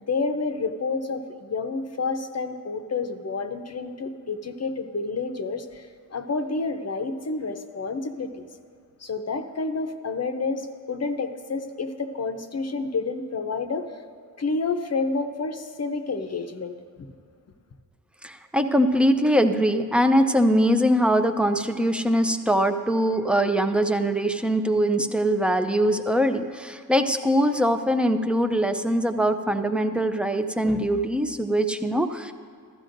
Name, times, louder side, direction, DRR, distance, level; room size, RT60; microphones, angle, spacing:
voice 1, 0.1-8.5 9.0-14.1 14.4-17.1, left 4 dB, 45° left, 7 dB, 0.7 m, -29 dB
voice 2, 18.2-32.3, equal, 5° right, 8 dB, 0.5 m, -22 dB
15.0 x 13.0 x 2.6 m, 2.3 s
wide cardioid pair, 110°, 36 cm